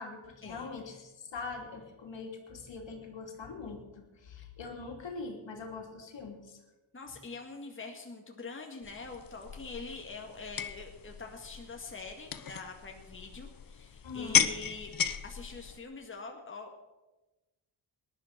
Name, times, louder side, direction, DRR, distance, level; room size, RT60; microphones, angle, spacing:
voice 1, 0.0-6.6 7.1-7.2 14.0-14.6, left 4 dB, 65° left, 2 dB, 3.0 m, -43 dB
voice 2, 6.9-14.9 15.2-16.8, left 3 dB, 25° left, 1 dB, 2.0 m, -44 dB
sound 1, 8.8-15.8, left 7 dB, 45° left, 0.9 m, -35 dB
18.5 x 11.0 x 5.9 m, 1.1 s
cardioid pair, 95°, 47 cm